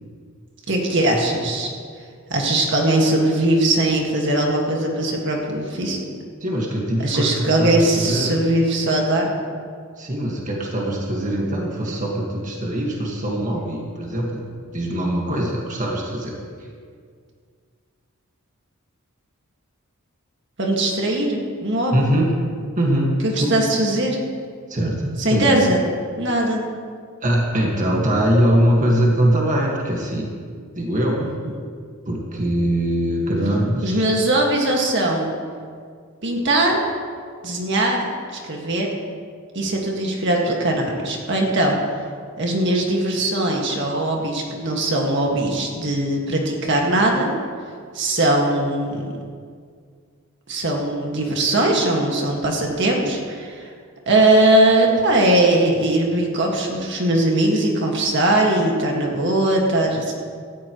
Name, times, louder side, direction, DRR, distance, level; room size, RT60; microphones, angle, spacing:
voice 1, 0.7-1.7 2.3-6.1 7.0-9.3 20.6-22.1 23.2-24.2 25.2-25.8 26.2-26.6 31.2-31.5 33.8-35.3 36.2-36.8 37.4-38.0 38.3-38.9 39.5-41.8 42.4-47.3 47.9-49.1 50.5-53.7 54.1-60.1, right 1 dB, 55° right, 0 dB, 1.9 m, -20 dB
voice 2, 6.4-8.3 10.0-16.4 21.9-22.3 22.8-23.7 24.7-25.5 27.2-30.3 30.7-31.3 32.1-34.1, right 1 dB, 35° right, -2 dB, 1.7 m, -22 dB
17.5 x 14.0 x 3.1 m, 2.1 s
head